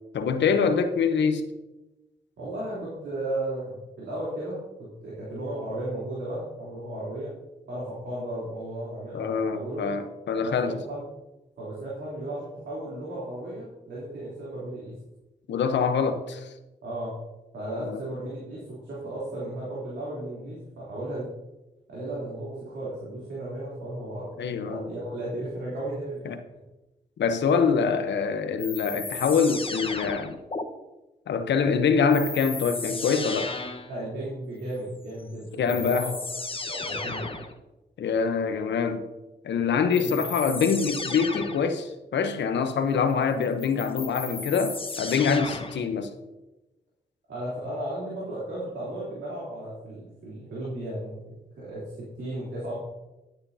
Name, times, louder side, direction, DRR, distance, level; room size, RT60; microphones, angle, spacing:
voice 1, 0.1-1.5 9.1-10.8 15.5-16.5 17.8-18.0 24.4-24.9 26.2-26.4 27.2-30.4 31.3-33.5 35.6-36.1 38.0-39.0 39.4-46.1, left 6 dB, 80° left, 0.9 m, -25 dB
voice 2, 2.4-7.3 7.7-9.8 10.4-11.0 11.6-14.9 16.8-17.2 17.5-21.3 21.9-24.3 24.7-26.3 33.9-36.2 36.6-37.3 39.9-40.2 45.2-45.5 47.3-52.8, right 1 dB, 85° right, 3.4 m, -35 dB
sound 1, 28.6-30.6 32.1-33.9 35.2-35.3 35.7-37.5 39.9-41.7 43.4-45.9, left 3 dB, 30° left, 1.1 m, -34 dB
11.5 x 9.4 x 2.8 m
supercardioid pair, 50°, 18 cm